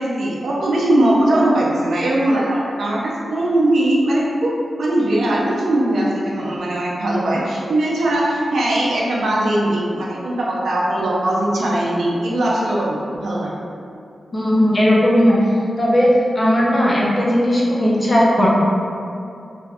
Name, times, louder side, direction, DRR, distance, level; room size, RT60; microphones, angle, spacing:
voice 1, 0.0-13.6, right 1 dB, 80° right, -5 dB, 0.4 m, -20 dB
voice 2, 14.3-15.5 15.8-16.1 16.3-18.5, equal, 30° left, -6 dB, 0.5 m, -16 dB
2.5 x 2.2 x 3.3 m, 2.5 s
cardioid pair, 70°, 0 cm